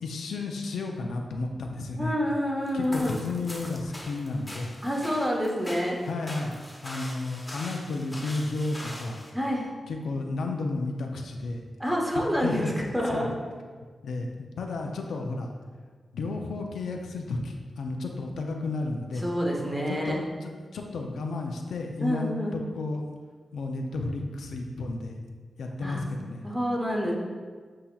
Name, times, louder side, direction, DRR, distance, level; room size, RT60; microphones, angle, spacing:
voice 1, 0.0-2.1 2.7-4.7 6.0-6.6 6.8-9.2 9.9-11.6 12.1-12.7 13.1-13.3 14.0-15.5 16.1-19.3 19.9-23.0 23.5-25.2 25.6-26.5, left 3 dB, 85° left, 2 dB, 0.4 m, -32 dB
voice 2, 2.0-3.2 4.8-6.0 9.3-9.7 11.8-13.3 19.2-20.2 22.0-22.5 25.8-26.0 26.4-27.1, equal, 10° right, -2 dB, 1.0 m, -27 dB
sound 1, 2.7-9.3, left 1 dB, 15° left, 0.9 m, -42 dB
7.4 x 2.7 x 2.3 m, 1.5 s
cardioid pair, 65°, 0 cm